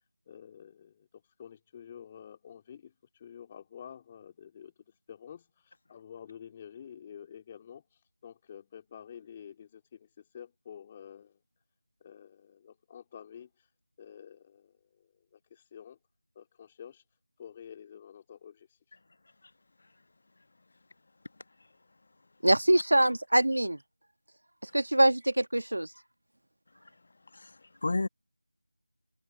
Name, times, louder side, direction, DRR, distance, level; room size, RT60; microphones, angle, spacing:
voice 1, 0.3-1.1 1.4-4.7 5.1-11.4 12.0-13.7 14.0-16.0 16.4-17.0 17.4-18.7, left 8 dB, 15° left, 2.3 m, -49 dB
voice 2, 22.4-23.8 24.7-25.9, right 1 dB, 80° right, 1.6 m, -24 dB
voice 3, 27.3-28.1, left 3 dB, 45° left, 1.3 m, -32 dB
figure-of-eight pair, 170°, 0 cm